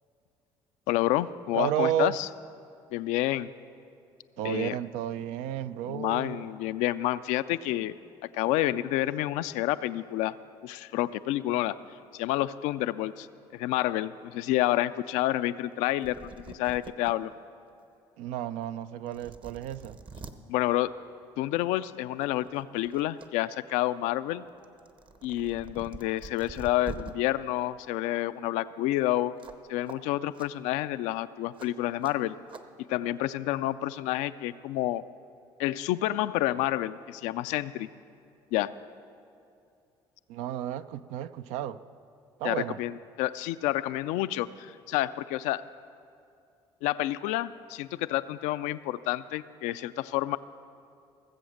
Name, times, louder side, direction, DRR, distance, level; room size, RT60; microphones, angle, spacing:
voice 1, 0.9-2.3 2.9-3.5 4.4-4.8 5.9-7.9 8.3-10.4 10.6-11.7 12.1-13.3 13.5-17.3 20.5-20.9 21.4-24.4 25.2-29.3 29.7-32.3 32.9-35.0 35.6-37.9 38.5-38.7 42.4-45.6 46.8-50.4, left 15 dB, 80° left, 14 dB, 0.4 m, -29 dB
voice 2, 1.5-2.2 4.4-6.5 18.2-20.0 40.3-41.8 42.4-42.8, right 11 dB, 80° right, 13 dB, 0.4 m, -32 dB
sound 1, 15.8-17.1 17.7-17.8 18.6-18.7 19.1-20.3 21.6-21.8 22.2-23.3 23.6-27.1 29.4-29.6 29.9-30.0 30.3-30.5 31.6-31.7 32.0-32.1 32.5-32.6, right 4 dB, 45° right, 1.0 m, -45 dB
17.0 x 7.8 x 6.4 m, 2.5 s
supercardioid pair, 65°, 12 cm